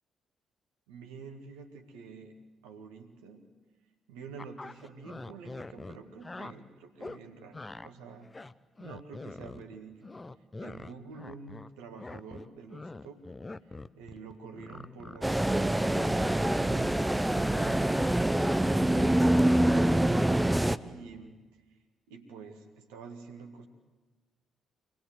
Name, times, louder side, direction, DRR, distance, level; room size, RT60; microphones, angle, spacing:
voice 1, 0.9-3.5 4.1-8.3 8.8-10.1 10.6-13.2 13.6-18.3 18.6-21.8 22.1-23.7, right 5 dB, 75° right, 4 dB, 2.0 m, -48 dB
sound 1, 4.4-6.5 7.0-7.2 7.5-7.9 8.2-9.7 10.0-11.7 12.0-17.0 17.3-20.6, left 2 dB, 25° left, 0.8 m, -43 dB
sound 2, 15.2-20.8, right 1 dB, 10° right, 0.8 m, -25 dB
25.0 x 19.5 x 8.0 m, 1.2 s
figure-of-eight pair, 40°, 0 cm